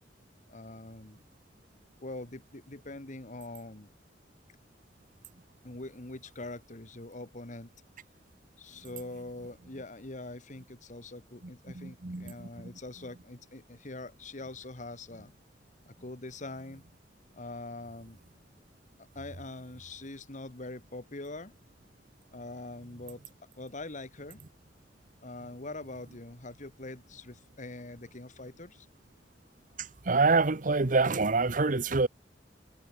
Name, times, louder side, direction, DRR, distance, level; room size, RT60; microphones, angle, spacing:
voice 1, 0.5-1.2 2.0-3.9 5.6-7.7 8.6-15.3 15.9-16.8 17.3-18.2 19.0-21.5 22.3-23.2 23.6-24.4 25.2-28.9, left 2 dB, 45° left, 1.9 m, -43 dB
voice 2, 11.7-12.7 29.8-32.1, right 3 dB, 45° right, 1.0 m, -26 dB
head